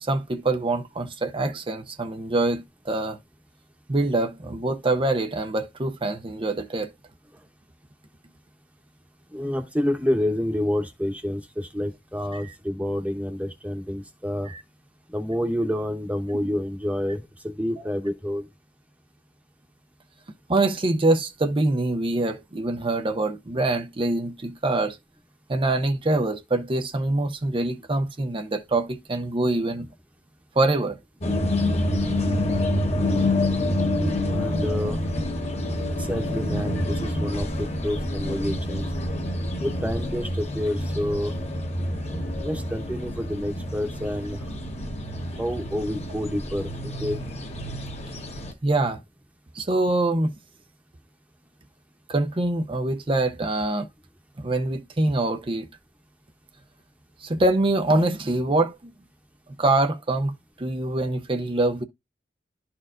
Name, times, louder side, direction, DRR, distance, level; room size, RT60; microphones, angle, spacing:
voice 1, 0.0-3.2 3.9-6.9 12.3-12.4 14.5-14.6 16.3-16.5 20.5-25.0 25.5-29.9 30.6-31.0 48.6-49.0 49.5-50.3 52.1-53.9 54.4-55.7 57.2-58.9 59.6-61.8, right 2 dB, 30° right, 0.6 m, -24 dB
voice 2, 9.3-14.5 15.1-18.5 34.3-35.0 36.0-38.9 39.6-41.3 42.4-44.4 45.4-46.7 47.0-47.2, left 1 dB, 10° right, 1.0 m, -28 dB
sound 1, 31.2-48.5, left 1 dB, 35° left, 1.2 m, -27 dB
12.0 x 4.3 x 2.5 m
head